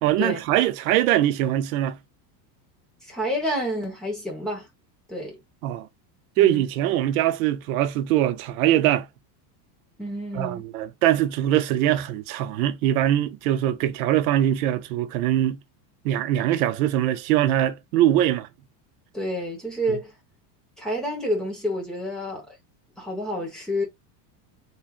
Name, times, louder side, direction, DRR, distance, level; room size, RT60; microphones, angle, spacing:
voice 1, 0.0-2.0 5.6-5.9 6.4-9.1 10.3-15.6 16.0-18.5, right 12 dB, 60° right, 0.7 m, -22 dB
voice 2, 3.0-4.7 5.1-5.4 6.4-6.7 10.0-10.7 19.1-20.1 20.8-22.6 23.0-23.8, equal, ahead, 1.1 m, -29 dB
3.6 x 3.3 x 2.4 m
supercardioid pair, 175°, 50 cm